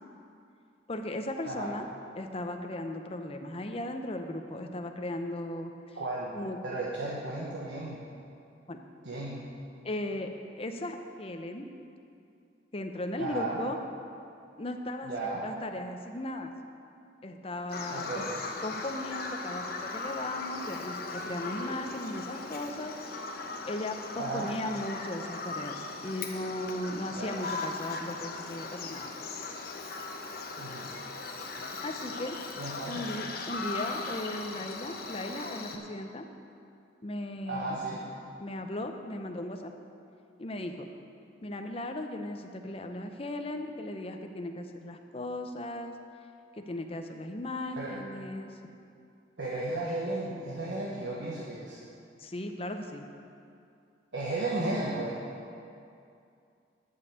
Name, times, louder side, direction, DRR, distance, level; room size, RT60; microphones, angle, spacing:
voice 1, 0.9-1.9 2.2-6.0 6.3-6.6 8.7-8.8 9.8-10.3 10.5-11.7 12.7-13.8 14.6-16.5 17.2-18.3 18.6-23.2 23.7-29.1 31.8-32.4 32.9-36.3 37.0-37.7 38.4-39.7 40.4-40.8 41.4-46.0 46.6-48.6 52.2-53.0, left 1 dB, 35° left, 5 dB, 0.7 m, -37 dB
voice 2, 5.9-6.3 6.6-8.1 9.0-9.5 13.2-13.6 15.0-15.4 17.9-18.3 24.2-24.5 27.1-27.3 30.6-30.9 32.6-33.1 37.5-38.0 47.8-48.0 49.4-51.8 54.1-55.2, right 2 dB, 85° right, -6 dB, 1.4 m, -34 dB
Bird vocalization bird call bird song, 17.7-35.8, left 3 dB, 55° left, 1.0 m, -38 dB
11.0 x 5.5 x 8.0 m, 2.5 s
head